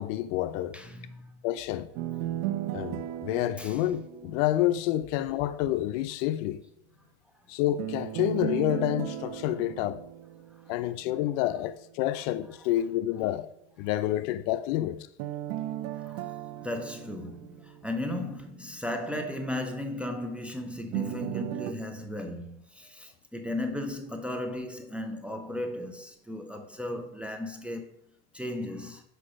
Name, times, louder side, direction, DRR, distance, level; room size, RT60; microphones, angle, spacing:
voice 1, 0.0-0.8 1.4-1.9 2.7-6.6 7.5-10.0 10.7-13.5 13.8-15.1, left 13 dB, 70° left, 0.7 m, -28 dB
voice 2, 0.7-1.3 3.6-3.8 16.0-16.3 16.5-27.8 28.3-29.0, left 1 dB, 5° right, 0.6 m, -36 dB
sound 1, 2.0-5.0 7.8-11.0 15.2-18.3 20.9-21.7, right 13 dB, 75° right, 0.6 m, -36 dB
6.7 x 4.9 x 5.0 m
supercardioid pair, 125°, 40 cm